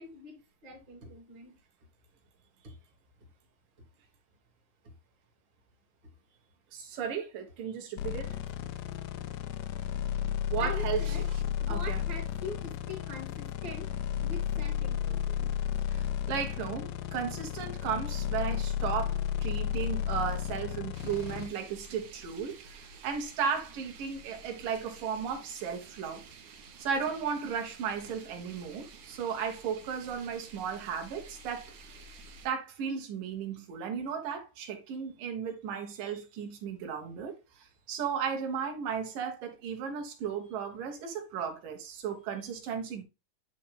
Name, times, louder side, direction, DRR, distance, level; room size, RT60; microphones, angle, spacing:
voice 1, 0.0-1.5 2.6-2.7 4.8-4.9 10.6-11.2 11.6-13.9 14.2-15.5, left 1 dB, 35° right, 3.4 m, -43 dB
voice 2, 6.7-8.4 10.5-11.4 11.7-12.0 15.9-26.2 26.8-31.7 32.4-43.0, right 7 dB, 90° right, 3.1 m, -35 dB
sound 1, 8.0-21.5, left 10 dB, 85° left, 2.2 m, -33 dB
sound 2, 20.9-32.5, right 4 dB, 75° right, 2.6 m, -51 dB
10.5 x 4.5 x 2.3 m
omnidirectional pair, 3.7 m